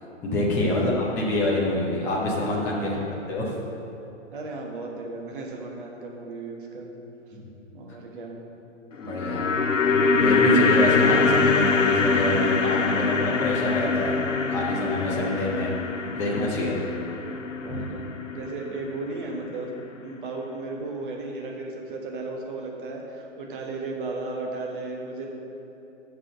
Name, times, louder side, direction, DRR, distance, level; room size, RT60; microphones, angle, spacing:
voice 1, 0.0-3.5 7.3-7.4 9.0-9.5 10.1-15.7 16.2-16.8 17.7-17.8, left 1 dB, 5° left, -4 dB, 0.5 m, -26 dB
voice 2, 2.8-3.1 4.3-6.9 7.7-8.5 11.9-12.3 13.3-13.7 15.1-15.5 16.1-16.7 17.6-18.0 18.3-25.3, right 3 dB, 45° right, 0 dB, 1.4 m, -35 dB
sound 1, 8.9-19.2 19.5-19.6, left 4 dB, 80° left, 0.6 m, -24 dB
6.5 x 6.0 x 7.3 m, 3.0 s
figure-of-eight pair, 120°, 38 cm